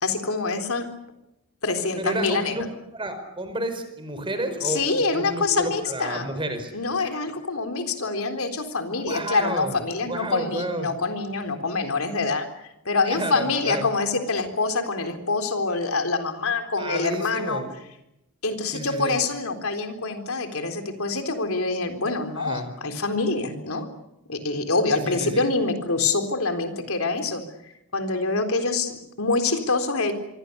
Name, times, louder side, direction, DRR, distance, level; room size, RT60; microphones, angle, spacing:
voice 1, 0.0-0.9 1.6-2.5 4.6-6.2 6.7-12.5 12.9-17.6 18.4-23.9 24.3-27.4 27.9-30.1, left 3 dB, 80° left, 7 dB, 3.9 m, -25 dB
voice 2, 2.0-2.7 2.9-6.7 9.0-9.8 10.0-10.9 13.1-13.9 16.8-17.7 18.7-19.2 22.4-22.7 24.9-25.5, right 1 dB, 25° right, 9 dB, 4.9 m, -31 dB
26.5 x 24.0 x 7.0 m, 0.85 s
head